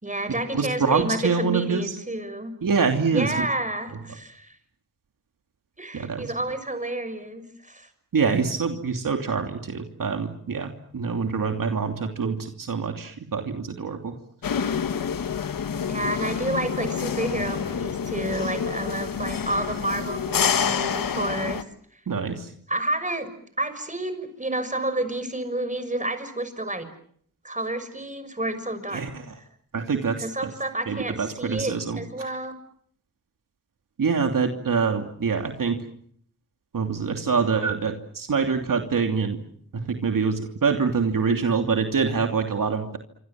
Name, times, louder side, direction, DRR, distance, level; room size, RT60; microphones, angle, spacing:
voice 1, 0.0-2.5 3.1-4.6 5.8-7.9 15.9-21.6 22.7-23.3 23.6-26.9 27.4-29.0 30.2-32.5, right 2 dB, 25° right, 11 dB, 6.3 m, -30 dB
voice 2, 0.5-2.0 2.6-3.3 5.9-6.3 8.1-14.2 22.1-22.5 28.9-29.3 29.7-30.5 30.9-32.3 34.0-35.9 36.7-39.4 39.7-43.0, right 5 dB, 75° right, 4 dB, 2.9 m, -25 dB
sound 1, 14.4-21.6, left 7 dB, 85° left, 1.4 m, -27 dB
27.0 x 25.5 x 7.6 m, 0.64 s
cardioid pair, 60°, 33 cm